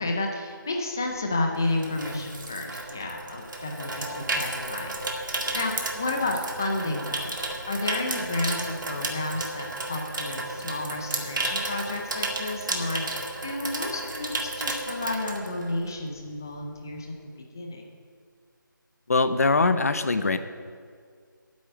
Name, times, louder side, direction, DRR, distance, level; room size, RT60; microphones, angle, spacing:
voice 1, 0.0-5.0 5.2-7.3 7.7-17.9, left 2 dB, 10° left, 2 dB, 0.5 m, -31 dB
Water tap faucet / Sink (filling or washing), 1.0-16.1 16.4-16.7, right 2 dB, 65° right, 2.0 m, -33 dB
voice 2, 19.1-20.4, left 3 dB, 45° left, 11 dB, 0.7 m, -22 dB
9.0 x 8.4 x 9.0 m, 2.1 s
figure-of-eight pair, 175°, 11 cm